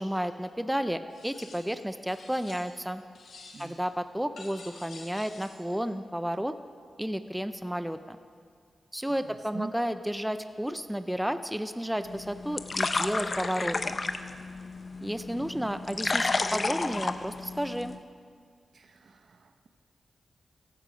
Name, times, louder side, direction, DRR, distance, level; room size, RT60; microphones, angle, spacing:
voice 1, 0.0-3.0 3.6-6.5 7.0-8.2 8.9-14.0 15.0-17.9, equal, 5° right, 10 dB, 0.6 m, -32 dB
sound 1, 1.1-1.8 2.1-2.9 3.1-3.9 4.4-5.7, left 3 dB, 80° left, 1.9 m, -49 dB
voice 2, 9.1-9.7 15.3-15.7 18.7-19.7, right 4 dB, 65° right, 8 dB, 0.8 m, -45 dB
sound 2, 12.0-18.0, left 3 dB, 45° left, 0.7 m, -32 dB
15.5 x 12.5 x 5.0 m, 2.1 s
cardioid pair, 60°, 0 cm